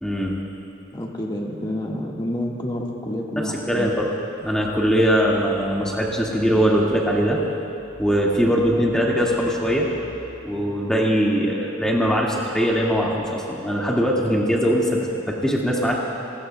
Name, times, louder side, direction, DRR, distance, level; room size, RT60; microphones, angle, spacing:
voice 1, 0.0-0.3 3.7-4.1 4.4-7.4 8.0-9.9 10.4-16.0, equal, 5° left, -4 dB, 1.9 m, -21 dB
voice 2, 0.9-3.9, left 1 dB, 25° left, -1 dB, 1.6 m, -28 dB
25.0 x 21.0 x 2.3 m, 2.9 s
head